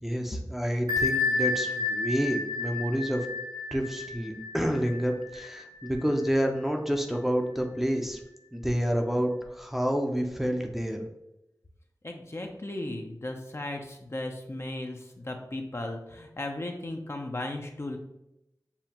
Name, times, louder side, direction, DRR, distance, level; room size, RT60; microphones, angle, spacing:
voice 1, 0.0-3.3 3.7-8.2 8.5-11.0, equal, 5° right, 2 dB, 0.6 m, -29 dB
Bell, 0.9-6.3, left 4 dB, 80° right, 0.5 m, -31 dB
voice 2, 12.0-18.0, left 1 dB, 40° left, 3 dB, 0.6 m, -36 dB
7.0 x 2.4 x 2.9 m, 0.88 s
wide cardioid pair, 50°, 7 cm